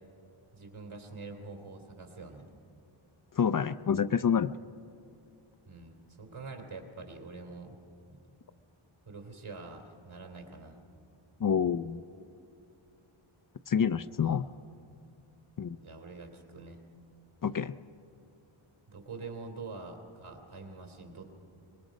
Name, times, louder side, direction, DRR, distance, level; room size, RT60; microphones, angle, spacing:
voice 1, 0.5-2.4 5.7-7.8 8.1-8.2 9.0-10.8 14.2-14.4 15.8-16.8 18.9-21.3, right 3 dB, 70° right, 2 dB, 3.2 m, -45 dB
voice 2, 3.4-4.5 11.4-12.0 13.7-14.4 15.6-15.8 17.4-17.7, left 7 dB, 45° left, 13 dB, 0.5 m, -27 dB
24.5 x 21.0 x 5.2 m, 2.6 s
wide cardioid pair, 85°, 50 cm